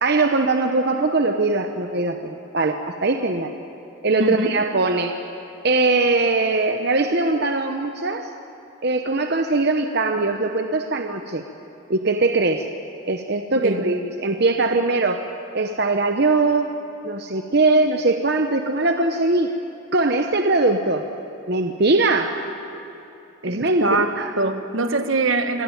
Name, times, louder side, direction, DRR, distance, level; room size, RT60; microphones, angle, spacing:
voice 1, 0.0-3.5 4.0-5.2 5.6-8.3 8.8-11.4 11.9-12.7 13.1-15.2 15.5-16.7 17.0-19.5 19.9-21.1 21.5-22.4 23.4-23.9 24.2-24.3, right 3 dB, 50° right, 6 dB, 0.9 m, -21 dB
voice 2, 4.2-4.6 13.6-13.9 23.4-25.6, right 2 dB, 70° right, 9 dB, 1.3 m, -23 dB
24.0 x 17.5 x 9.1 m, 2.9 s
head